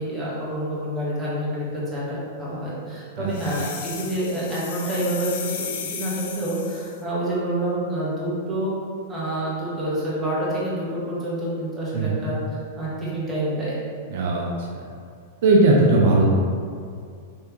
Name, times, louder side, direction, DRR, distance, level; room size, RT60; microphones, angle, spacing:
voice 1, 0.0-8.7 9.1-13.8, right 1 dB, 10° right, -9 dB, 1.3 m, -28 dB
sound 1, 3.3-7.0, left 7 dB, 65° left, 0.4 m, -35 dB
voice 2, 11.9-12.3 14.1-14.8 15.4-16.2, right 2 dB, 65° right, -2 dB, 0.5 m, -19 dB
3.4 x 3.2 x 3.0 m, 2.3 s
hypercardioid pair, 125°, 0 cm